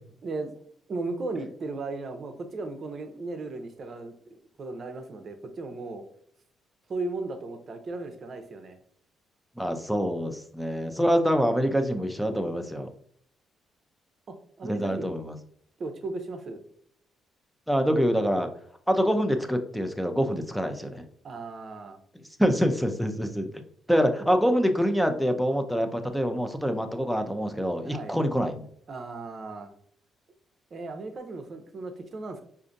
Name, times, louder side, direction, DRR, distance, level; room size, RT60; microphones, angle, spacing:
voice 1, 0.9-4.1 4.6-6.0 6.9-8.8 14.3-15.1 15.8-16.6 21.2-22.0 27.8-28.2 28.9-29.7 30.7-32.4, right 3 dB, 50° right, 6 dB, 0.6 m, -36 dB
voice 2, 9.6-12.9 14.6-15.4 17.7-18.5 18.9-21.0 22.4-23.5 23.9-28.7, equal, ahead, 6 dB, 0.5 m, -25 dB
4.9 x 2.6 x 2.5 m, 0.64 s
cardioid pair, 90°, 0 cm